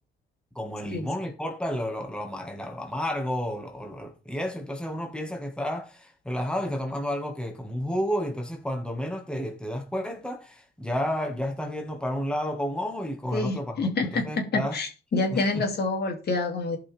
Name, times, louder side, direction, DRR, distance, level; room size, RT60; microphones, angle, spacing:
voice 1, 0.5-14.8 15.3-15.6, equal, 5° left, 1.7 m, -31 dB
voice 2, 13.3-16.8, left 3 dB, 55° left, 2.7 m, -27 dB
15.0 x 5.6 x 3.5 m
cardioid pair, 90°, 20 cm